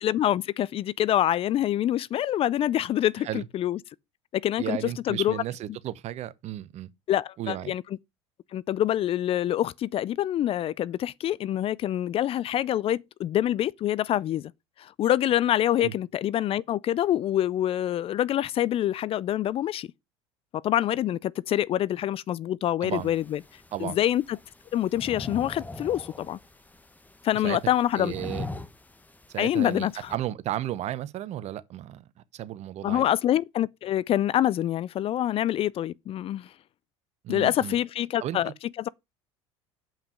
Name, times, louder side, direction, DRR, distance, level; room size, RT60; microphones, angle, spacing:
voice 1, 0.0-3.8 4.3-4.8 5.1-5.3 7.1-7.8 8.5-14.5 14.8-19.9 20.6-23.4 23.8-24.2 24.7-26.4 27.2-28.1 29.4-29.9 32.8-36.5 37.3-38.5, left 12 dB, 40° left, 0.4 m, -26 dB
voice 2, 4.6-6.9 7.4-7.7 15.8-15.9 22.8-23.1 23.7-24.0 27.4-27.6 27.9-28.5 29.3-33.0 37.2-37.8 38.2-38.4, right 12 dB, 50° right, 0.9 m, -34 dB
sound 1, 22.9-30.2, left 2 dB, 10° left, 1.2 m, -42 dB
7.4 x 5.7 x 5.0 m
hypercardioid pair, 75°, 14 cm